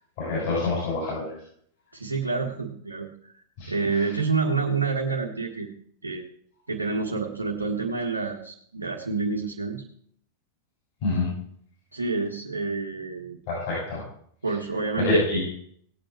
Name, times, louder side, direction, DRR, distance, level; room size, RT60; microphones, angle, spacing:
voice 1, 0.2-1.4 3.6-3.7 11.0-11.3 13.5-14.0 15.0-15.5, left 2 dB, 50° left, -5 dB, 7.2 m, -26 dB
voice 2, 1.9-5.7 6.0-6.2 6.7-9.8 11.9-13.4 14.4-15.4, right 4 dB, 80° right, 0 dB, 1.5 m, -28 dB
18.0 x 8.9 x 4.6 m, 0.62 s
figure-of-eight pair, 90°, 0 cm